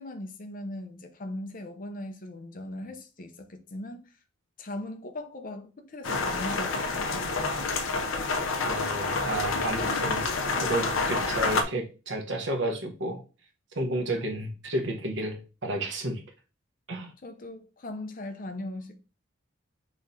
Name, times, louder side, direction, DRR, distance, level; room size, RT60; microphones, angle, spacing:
voice 1, 0.0-4.1 4.6-7.7 17.2-18.9, left 1 dB, 40° left, 0.7 m, -39 dB
sound 1, 6.0-11.6, left 3 dB, 80° left, 0.7 m, -28 dB
voice 2, 8.6-10.3 10.6-13.2 13.7-16.2 16.9-17.1, right 1 dB, 65° right, 1.1 m, -31 dB
6.0 x 3.1 x 2.7 m
head